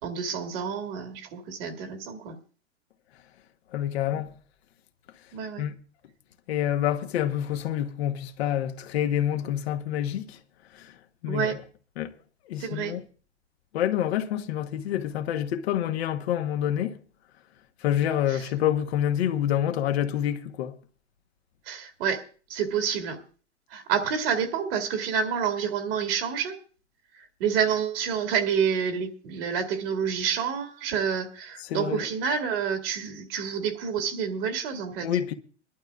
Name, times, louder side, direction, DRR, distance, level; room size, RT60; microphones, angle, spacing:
voice 1, 0.0-2.4 4.1-4.2 5.3-5.6 11.3-11.6 12.6-12.9 18.3-18.4 21.7-22.2 22.5-23.2 23.7-26.6 27.4-35.1, right 7 dB, 55° right, 2.1 m, -28 dB
voice 2, 3.7-4.3 5.6-5.7 6.5-10.4 10.7-10.9 11.2-11.5 12.0-12.1 12.5-13.0 13.7-17.0 17.8-20.8 31.6-32.1 35.0-35.3, left 11 dB, 60° left, 1.2 m, -27 dB
25.5 x 11.5 x 2.4 m
hypercardioid pair, 105°, 35 cm